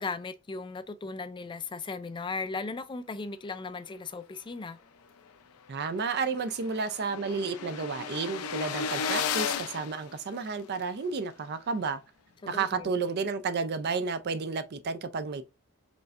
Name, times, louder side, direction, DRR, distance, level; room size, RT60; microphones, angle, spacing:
voice 1, 0.0-4.8 12.4-12.9, left 4 dB, 20° left, 0.4 m, -37 dB
sound 1, 5.3-5.4 5.7-5.8 5.9-10.8, left 7 dB, 80° left, 0.6 m, -34 dB
voice 2, 5.7-12.0 12.5-15.4, right 4 dB, 50° right, 0.5 m, -31 dB
5.1 x 3.1 x 2.5 m
head